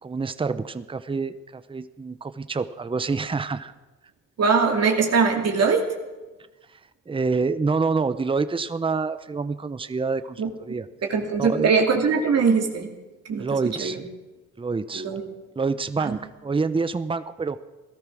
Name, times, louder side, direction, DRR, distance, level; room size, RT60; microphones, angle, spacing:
voice 1, 0.0-3.7 7.1-10.9 11.4-11.7 13.4-14.0 14.6-15.1 15.6-17.6, right 4 dB, 15° right, 12 dB, 0.8 m, -27 dB
voice 2, 4.4-5.9 10.4-10.5 11.0-12.9 13.3-14.0 14.9-15.2 16.0-16.2, right 5 dB, 55° right, 1 dB, 2.7 m, -22 dB
17.5 x 13.0 x 6.3 m, 1.2 s
cardioid pair, 90°, 30 cm